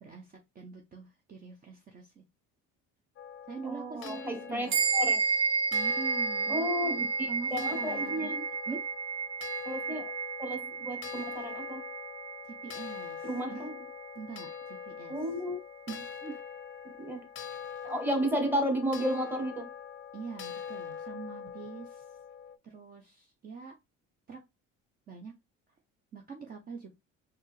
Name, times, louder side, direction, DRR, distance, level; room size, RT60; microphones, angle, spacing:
voice 1, 0.0-2.2 3.5-4.8 5.7-7.0 7.3-8.3 8.7-8.8 12.4-13.7 14.2-15.1 15.9-16.4 20.1-22.0 22.6-23.8 24.3-24.4 25.1-25.3 26.1-27.0, right 5 dB, 30° right, 0.7 m, -44 dB
sound 1, 3.2-22.6, left 8 dB, 40° left, 0.6 m, -43 dB
voice 2, 3.6-5.2 6.5-8.5 9.6-10.1 10.4-11.8 13.2-13.8 15.1-15.6 17.0-17.2 17.8-19.7, equal, 5° right, 1.3 m, -33 dB
sound 2, 4.7-14.4, right 5 dB, 75° right, 1.4 m, -32 dB
4.2 x 2.8 x 3.2 m
cardioid pair, 105°, 30 cm